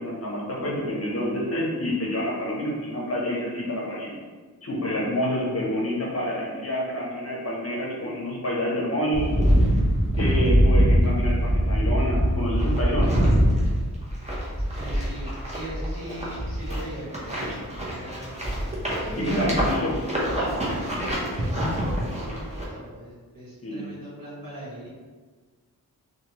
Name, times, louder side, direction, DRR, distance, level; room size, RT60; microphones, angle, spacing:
voice 1, 0.0-4.1 4.6-9.3 10.2-13.2 19.2-20.0 23.6-23.9, left 1 dB, 40° left, -5 dB, 0.8 m, -28 dB
sound 1, 9.1-22.6, equal, 20° right, 0.7 m, -23 dB
voice 2, 14.6-18.7 20.7-24.9, right 1 dB, 60° right, -8 dB, 1.2 m, -41 dB
3.3 x 2.3 x 2.9 m, 1.4 s
wide cardioid pair, 90°, 38 cm